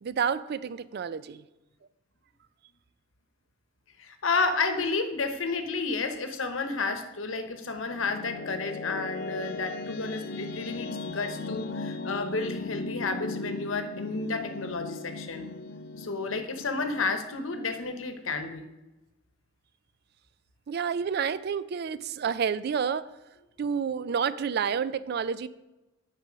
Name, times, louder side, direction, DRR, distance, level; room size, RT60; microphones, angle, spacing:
voice 1, 0.0-1.4 20.7-23.0 23.6-25.5, right 7 dB, 55° right, 16 dB, 0.3 m, -29 dB
voice 2, 4.0-15.4 16.0-18.6, left 3 dB, 80° left, 7 dB, 0.9 m, -31 dB
sound 1, 7.5-18.5, left 3 dB, 50° left, 0.5 m, -38 dB
9.8 x 4.1 x 5.1 m, 1.0 s
head